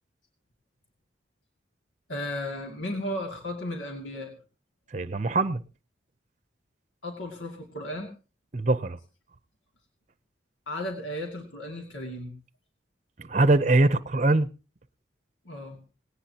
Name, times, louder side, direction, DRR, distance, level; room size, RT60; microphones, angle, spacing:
voice 1, 2.1-4.3 7.0-8.1 10.7-12.3 15.5-15.8, left 1 dB, 85° left, 2.4 m, -34 dB
voice 2, 4.9-5.6 8.5-9.0 13.2-14.5, right 2 dB, 40° right, 0.7 m, -22 dB
18.0 x 18.0 x 2.9 m
head